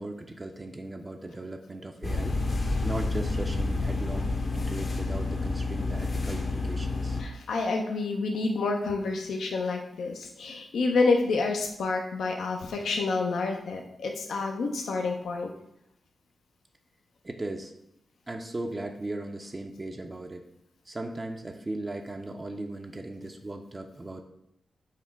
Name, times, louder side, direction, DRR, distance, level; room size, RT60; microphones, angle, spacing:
voice 1, 0.0-2.4 2.8-7.2 17.2-17.7 18.3-20.4 20.9-24.2, right 2 dB, 30° right, 3 dB, 0.4 m, -37 dB
sound 1, 2.0-7.2, left 3 dB, 55° left, 0.7 m, -29 dB
voice 2, 7.2-15.5, left 3 dB, 85° left, 2 dB, 0.4 m, -28 dB
5.6 x 2.1 x 4.5 m, 0.80 s
cardioid pair, 55°, 0 cm